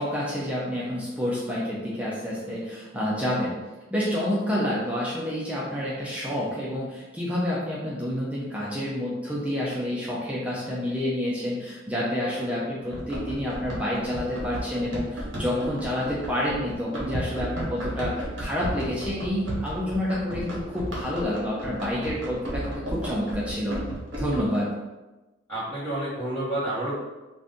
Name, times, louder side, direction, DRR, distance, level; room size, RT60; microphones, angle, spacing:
voice 1, 0.0-3.6 3.9-23.8 24.2-24.7, left 1 dB, 5° right, -7 dB, 0.5 m, -28 dB
Run, 12.9-24.6, right 1 dB, 70° right, 1.1 m, -34 dB
voice 2, 25.5-26.9, right 1 dB, 10° left, -16 dB, 1.2 m, -29 dB
2.6 x 2.5 x 3.5 m, 1.1 s
head